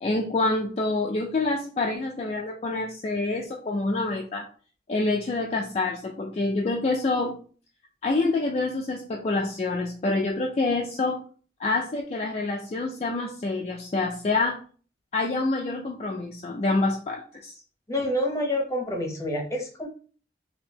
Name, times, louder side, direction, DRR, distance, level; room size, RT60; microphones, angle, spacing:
voice 1, 0.0-4.5 4.9-7.4 8.0-11.2 11.6-14.6 15.1-17.5, left 3 dB, 35° left, 0 dB, 0.3 m, -27 dB
voice 2, 17.9-19.9, left 1 dB, 15° left, 1 dB, 0.8 m, -27 dB
3.6 x 2.7 x 2.8 m, 0.42 s
head